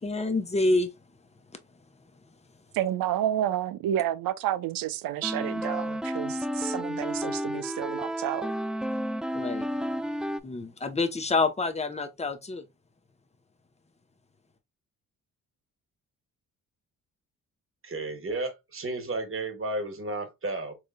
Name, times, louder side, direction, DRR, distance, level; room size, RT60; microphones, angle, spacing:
voice 1, 0.0-0.9 9.3-9.7 10.4-12.6, left 3 dB, 20° left, 0.9 m, -27 dB
voice 2, 2.7-8.5, right 12 dB, 80° right, 0.6 m, -30 dB
sound 1, 5.2-10.4, equal, ahead, 0.3 m, -31 dB
voice 3, 17.8-20.8, right 2 dB, 40° right, 1.3 m, -33 dB
3.8 x 3.2 x 2.2 m
supercardioid pair, 60°, 34 cm